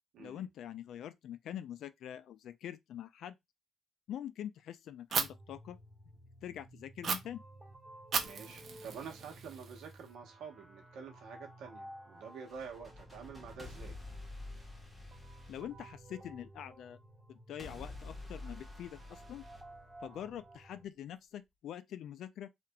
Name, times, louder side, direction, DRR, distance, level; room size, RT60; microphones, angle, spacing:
voice 1, 0.2-3.4 4.1-5.8 6.4-7.4 15.5-17.0 17.3-19.5 20.0-22.5, left 10 dB, 75° left, 0.3 m, -44 dB
Fire, 5.1-5.2 7.0-7.1 8.1-10.1, right 6 dB, 55° right, 0.6 m, -36 dB
sound 1, 5.2-20.9, right 1 dB, 10° right, 0.8 m, -55 dB
voice 2, 8.2-14.0, right 6 dB, 85° right, 1.0 m, -48 dB
sound 2, 12.3-16.4 17.6-20.4, left 2 dB, 5° left, 1.2 m, -49 dB
2.9 x 2.5 x 2.3 m
cardioid pair, 90°, 0 cm